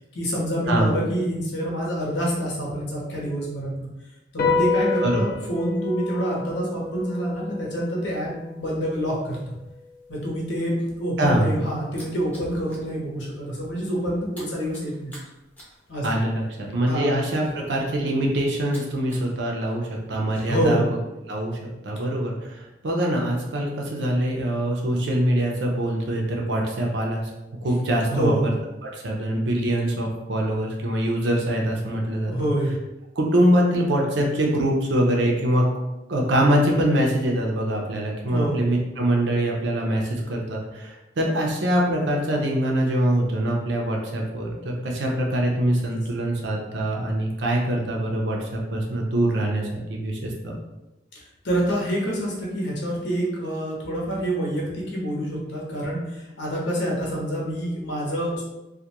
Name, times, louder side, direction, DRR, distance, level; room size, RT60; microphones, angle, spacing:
voice 1, 0.1-3.9 4.3-9.5 10.1-15.1 15.9-16.1 16.9-17.1 20.5-20.9 28.1-28.5 32.2-32.7 38.3-38.8 51.4-58.4, right 1 dB, 90° left, -3 dB, 0.8 m, -27 dB
sound 1, 4.4-11.1, left 4 dB, 55° left, 0.4 m, -30 dB
voice 2, 11.2-11.5 16.0-21.0 21.3-21.6 21.8-27.3 27.6-28.5 28.8-32.3 33.2-35.7 36.1-50.6, right 1 dB, 85° right, 0 dB, 0.6 m, -24 dB
sound 2, 11.9-12.9 13.3-13.5 13.8-19.3 19.6-20.6, left 1 dB, 10° left, 0.6 m, -46 dB
2.3 x 2.2 x 2.8 m, 1.0 s
head